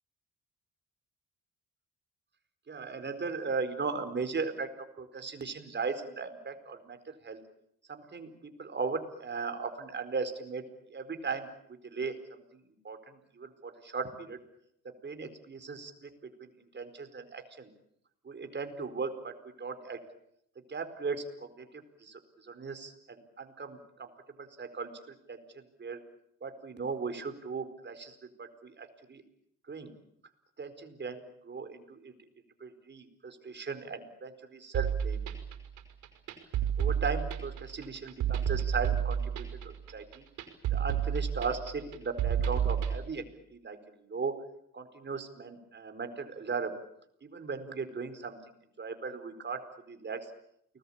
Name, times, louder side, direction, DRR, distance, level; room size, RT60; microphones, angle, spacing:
voice 1, 2.7-4.7 5.0-7.4 7.9-10.6 10.9-11.5 11.8-14.4 15.0-16.1 16.4-17.7 18.2-20.0 20.7-24.1 24.4-26.0 26.4-29.2 29.7-29.9 30.6-32.1 32.6-35.2 36.8-40.2 40.7-43.2 43.5-44.3 44.7-46.7 47.2-48.4 48.8-50.2, right 4 dB, 35° right, 8 dB, 4.6 m, -37 dB
sound 1, 34.7-43.0, right 8 dB, 90° right, 5.5 m, -31 dB
29.5 x 20.0 x 8.8 m, 0.75 s
cardioid pair, 90°, 30 cm